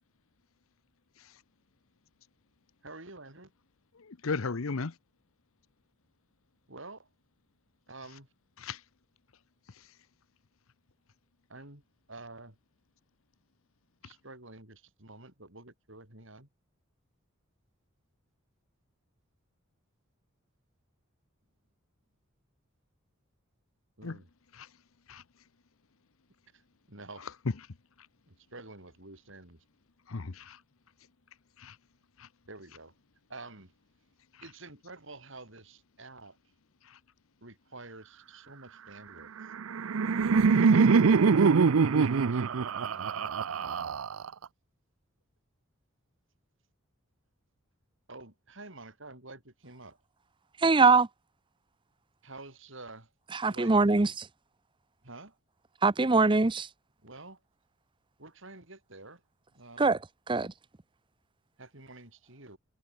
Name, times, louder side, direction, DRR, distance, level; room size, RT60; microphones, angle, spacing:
voice 1, 2.8-3.5 6.7-7.1 7.9-8.3 11.5-11.8 12.1-12.6 14.0-16.5 24.0-24.3 26.5-26.6 26.9-27.3 28.3-29.6 32.5-32.9 33.3-33.7 34.4-36.4 37.4-39.5 40.7-41.2 41.9-44.0 48.1-50.0 52.2-53.1 53.4-54.1 55.0-55.4 57.0-57.4 58.2-59.2 59.5-60.0 61.6-62.6, right 2 dB, 65° right, 6.1 m, -49 dB
voice 2, 3.9-4.9 8.6-8.8 24.0-24.2 24.5-24.7 25.1-25.2 30.1-30.6 31.6-31.8 32.2-32.3 36.8-37.0, left 4 dB, 75° left, 0.8 m, -36 dB
Laughter, 39.4-44.4, right 5 dB, 80° right, 0.5 m, -24 dB
voice 3, 50.6-51.1 53.3-54.1 55.8-56.7 59.8-60.0 60.3-60.5, right 3 dB, 25° right, 0.6 m, -22 dB
head